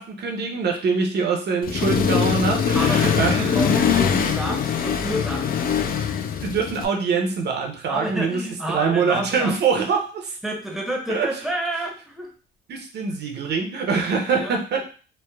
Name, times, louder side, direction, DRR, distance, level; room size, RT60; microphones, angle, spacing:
voice 1, 0.0-3.6 6.4-8.4 8.7-10.4 11.1-11.3 12.7-14.8, right 5 dB, 55° right, 2 dB, 0.6 m, -24 dB
Accelerating revving vroom, 1.6-6.9, left 7 dB, 45° left, 0.4 m, -22 dB
voice 2, 2.7-5.5 7.9-9.5 10.4-12.3 14.4-14.6, right 1 dB, ahead, 0 dB, 0.7 m, -29 dB
3.2 x 2.1 x 2.2 m, 0.38 s
cardioid pair, 90°, 20 cm